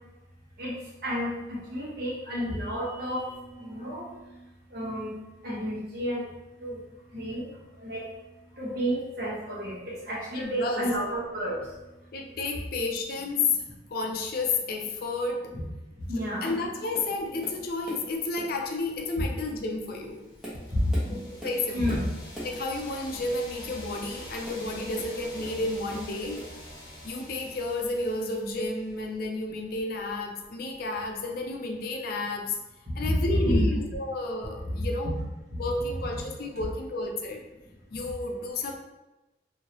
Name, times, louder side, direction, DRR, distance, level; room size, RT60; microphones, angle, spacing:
voice 1, 1.7-3.3 3.6-4.0 4.7-5.1 5.4-6.2 6.6-6.8 7.1-7.4 7.8-8.0 8.6-9.8 10.1-11.6 15.5-15.6 16.1-16.5 20.7-21.2 21.7-22.1 33.0-33.1 33.4-33.7, equal, 55° right, -6 dB, 1.2 m, -29 dB
voice 2, 10.3-10.9 12.1-13.6 13.9-15.5 16.2-20.2 21.1-22.0 22.4-26.4 27.0-32.6 32.9-35.1 35.6-37.4 37.9-38.7, left 3 dB, 50° left, 2 dB, 0.4 m, -31 dB
Tap, 16.4-16.7 16.9-18.1 18.3-18.7 19.3-19.5 20.1-22.6 24.4-25.6 25.9-26.6 27.3-27.4, right 1 dB, 5° right, 0.8 m, -42 dB
sound 1, 20.3-29.0, left 1 dB, 20° left, 0.9 m, -45 dB
3.1 x 2.7 x 2.8 m, 1.0 s
head